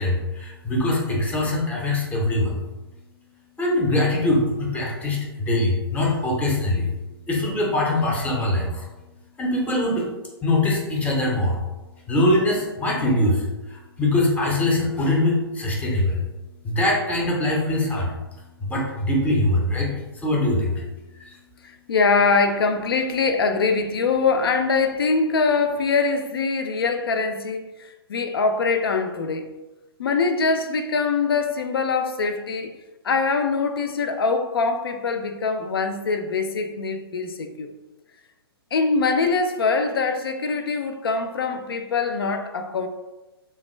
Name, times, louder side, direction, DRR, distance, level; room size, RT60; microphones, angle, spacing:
voice 1, 0.0-2.6 3.6-6.9 7.3-8.9 9.4-10.1 10.4-11.6 12.1-16.2 16.6-18.1 18.6-19.9 20.2-20.8 21.2-21.3, left 1 dB, 10° left, 0.6 m, -22 dB
voice 2, 21.6-29.5 30.0-32.7 33.0-37.7 38.7-42.9, left 4 dB, 65° left, 0.4 m, -23 dB
3.5 x 2.2 x 3.1 m
figure-of-eight pair, 125°, 13 cm